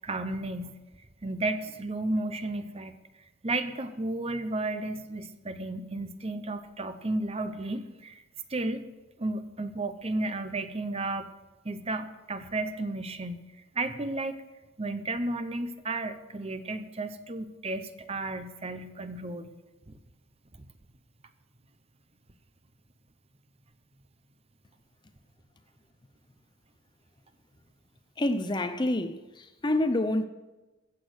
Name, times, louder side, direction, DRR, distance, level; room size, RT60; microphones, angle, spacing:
voice 1, 0.0-0.7 1.2-2.9 3.4-8.2 8.5-8.8 9.2-11.3 11.6-13.4 13.7-14.4 14.8-19.6, right 2 dB, 30° right, 0.8 m, -33 dB
voice 2, 28.2-30.3, left 1 dB, 20° left, 0.5 m, -27 dB
14.5 x 8.3 x 6.4 m
head